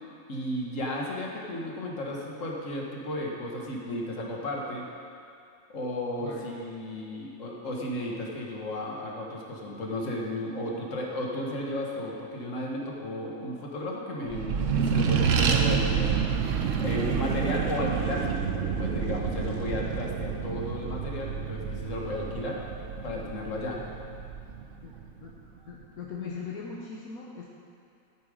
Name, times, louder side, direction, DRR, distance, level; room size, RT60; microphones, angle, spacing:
voice 1, 0.3-4.9 5.7-16.1 16.8-22.6 23.0-23.8, left 1 dB, 60° left, -2 dB, 1.9 m, -34 dB
Accelerating revving vroom, 14.3-25.2, right 6 dB, 65° right, 1.1 m, -28 dB
voice 2, 25.7-27.5, left 5 dB, 80° left, -3 dB, 1.5 m, -39 dB
13.5 x 8.9 x 5.1 m, 2.4 s
omnidirectional pair, 1.5 m